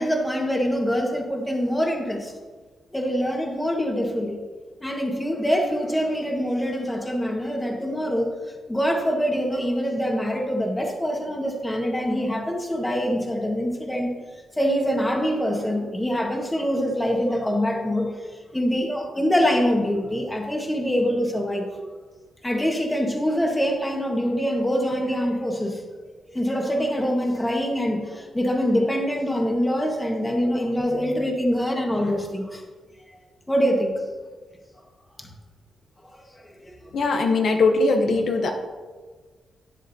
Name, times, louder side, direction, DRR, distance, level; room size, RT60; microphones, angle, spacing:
voice 1, 0.0-2.3 2.9-4.4 4.8-8.3 8.7-14.1 14.6-21.7 22.4-25.8 26.3-32.6 33.5-34.0 35.2-35.3 36.6-36.7, equal, 10° left, 1 dB, 1.6 m, -24 dB
voice 2, 36.9-38.5, left 3 dB, 60° left, 3 dB, 1.0 m, -20 dB
12.0 x 9.8 x 2.8 m, 1.4 s
cardioid pair, 120°, 0 cm